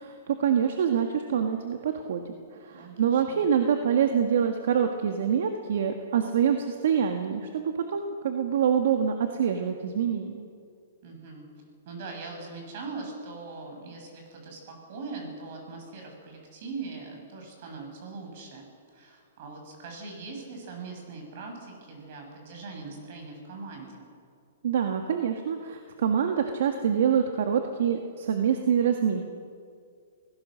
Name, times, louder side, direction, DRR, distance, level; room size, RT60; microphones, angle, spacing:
voice 1, 0.0-2.3 2.6-10.5 24.6-29.2, right 8 dB, 70° right, 5 dB, 1.8 m, -26 dB
voice 2, 2.7-3.5 11.0-11.5 11.9-18.6 18.9-24.1, right 3 dB, 50° right, 2 dB, 7.4 m, -41 dB
26.0 x 17.5 x 6.5 m, 2.2 s
hypercardioid pair, 150°, 0 cm